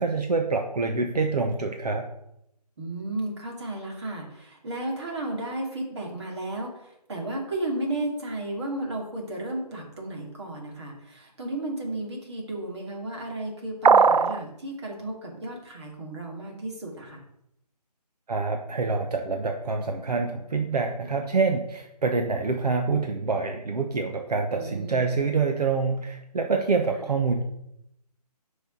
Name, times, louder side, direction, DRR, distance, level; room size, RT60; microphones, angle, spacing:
voice 1, 0.0-2.1 18.3-27.4, right 4 dB, 70° right, 4 dB, 1.1 m, -26 dB
voice 2, 2.8-17.2 24.5-25.0 26.9-27.0, right 1 dB, 40° right, 0 dB, 2.7 m, -33 dB
sound 1, 13.8-14.4, right 5 dB, 90° right, 0.6 m, -17 dB
9.9 x 5.7 x 4.0 m, 0.80 s
hypercardioid pair, 170°, 21 cm